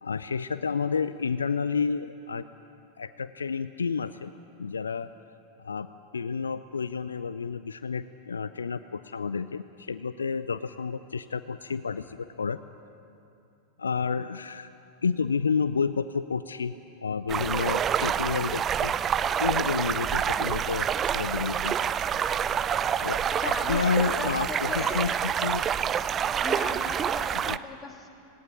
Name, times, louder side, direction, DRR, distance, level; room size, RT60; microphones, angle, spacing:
voice 1, 0.0-2.4 3.0-4.3 4.6-5.1 5.6-5.9 6.1-12.6 13.8-14.7 15.0-16.7 17.0-18.9 19.4-21.7 23.0-25.6 27.5-27.6, left 5 dB, 75° left, 13 dB, 0.5 m, -30 dB
sound 1, 17.3-27.6, right 8 dB, 25° right, 0.5 m, -27 dB
voice 2, 23.3-25.0 26.4-28.1, left 4 dB, 15° left, 2 dB, 2.8 m, -38 dB
18.5 x 18.0 x 9.8 m, 2.7 s
figure-of-eight pair, 90°, 0 cm